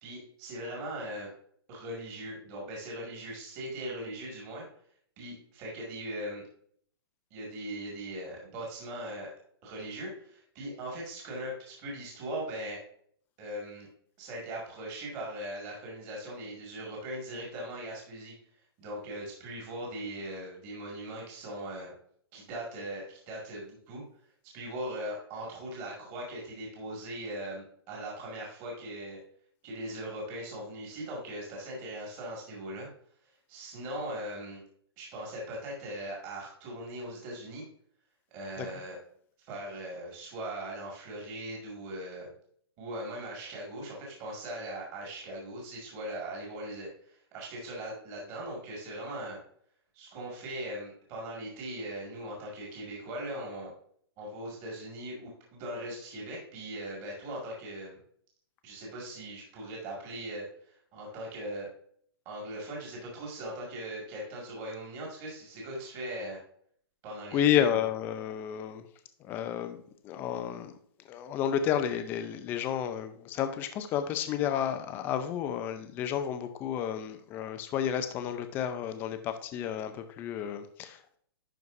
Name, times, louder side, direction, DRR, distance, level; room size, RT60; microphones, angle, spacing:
voice 1, 0.0-1.3 1.7-4.6 5.2-6.4 7.3-9.3 9.6-12.8 13.4-13.9 14.2-18.3 18.8-21.9 22.3-24.0 24.5-29.2 29.6-32.9 33.5-34.6 35.0-37.6 38.3-39.0 39.5-42.3 42.8-49.4 49.9-53.7 54.2-58.0 58.6-61.7 62.3-66.4 67.0-67.8, right 1 dB, 25° right, -2 dB, 2.0 m, -40 dB
voice 2, 67.3-68.9 69.2-70.7 71.1-81.2, left 9 dB, 15° left, 9 dB, 0.4 m, -31 dB
11.0 x 4.6 x 2.6 m, 0.62 s
hypercardioid pair, 160°, 14 cm